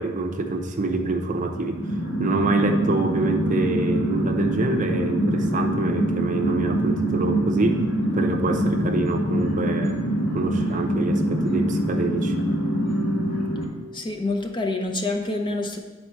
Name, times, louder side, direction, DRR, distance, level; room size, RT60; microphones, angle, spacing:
voice 1, 0.0-7.8 8.1-10.0 10.3-12.4, right 3 dB, 40° right, 5 dB, 0.6 m, -26 dB
sound 1, 1.5-13.7, right 1 dB, 70° left, 1.8 m, -24 dB
voice 2, 13.9-15.8, left 2 dB, 25° left, 3 dB, 0.6 m, -27 dB
8.7 x 4.3 x 4.5 m, 1.4 s
head